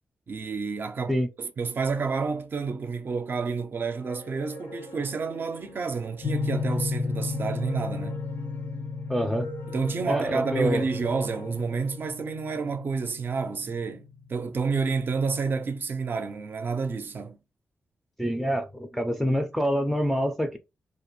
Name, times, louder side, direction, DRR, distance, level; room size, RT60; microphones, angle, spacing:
voice 1, 0.3-8.3 9.7-17.4, right 4 dB, 55° right, 0.5 m, -29 dB
sound 1, 4.0-12.1, left 2 dB, 55° left, 0.5 m, -43 dB
sound 2, 6.2-14.9, left 4 dB, 85° left, 0.7 m, -34 dB
voice 2, 9.1-9.5 10.1-10.9 18.2-20.6, equal, ahead, 0.4 m, -26 dB
2.5 x 2.1 x 2.9 m
cardioid pair, 75°, 4 cm